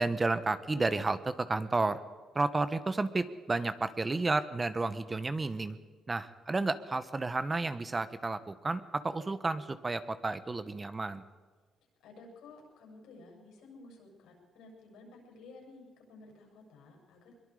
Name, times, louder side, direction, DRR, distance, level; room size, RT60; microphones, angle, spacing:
voice 1, 0.0-2.0 2.3-5.8 6.1-11.2, right 3 dB, 25° right, 12 dB, 1.2 m, -31 dB
voice 2, 12.0-17.4, left 3 dB, 90° left, 0 dB, 7.6 m, -53 dB
22.5 x 22.5 x 5.1 m, 1.4 s
cardioid pair, 90°, 0 cm